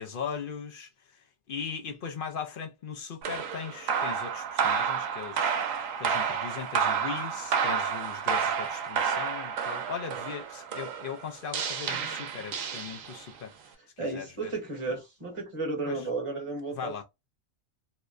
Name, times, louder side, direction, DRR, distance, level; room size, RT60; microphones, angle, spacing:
voice 1, 0.0-13.5 14.0-14.5 15.9-16.1 16.7-17.0, left 7 dB, 65° left, 0.5 m, -39 dB
sound 1, 3.2-13.4, right 7 dB, 75° right, 1.0 m, -30 dB
voice 2, 14.0-17.0, right 3 dB, 25° right, 1.1 m, -33 dB
2.9 x 2.1 x 2.4 m
omnidirectional pair, 1.4 m